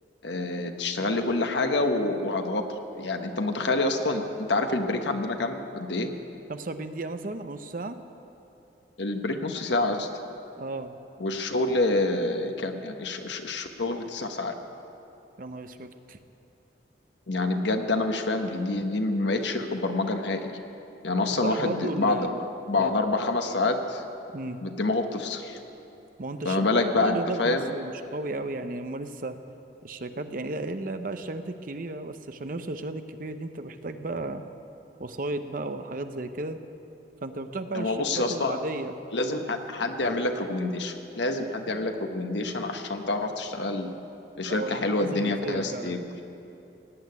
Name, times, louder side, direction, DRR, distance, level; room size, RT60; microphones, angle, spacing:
voice 1, 0.2-2.6 2.9-6.1 9.0-10.1 11.2-14.5 17.3-20.6 21.0-22.3 22.7-24.0 24.6-25.6 26.4-27.7 37.7-38.6 39.1-43.9 44.4-46.0, left 2 dB, 75° left, 5 dB, 1.2 m, -27 dB
voice 2, 6.5-8.0 10.6-10.9 15.4-16.2 21.3-22.5 22.8-22.9 24.3-24.6 26.2-26.7 27.0-29.4 29.8-34.4 35.0-36.6 37.2-38.0 38.3-39.0 44.5-46.0, right 2 dB, 50° right, 9 dB, 0.7 m, -34 dB
17.0 x 8.8 x 9.5 m, 2.9 s
head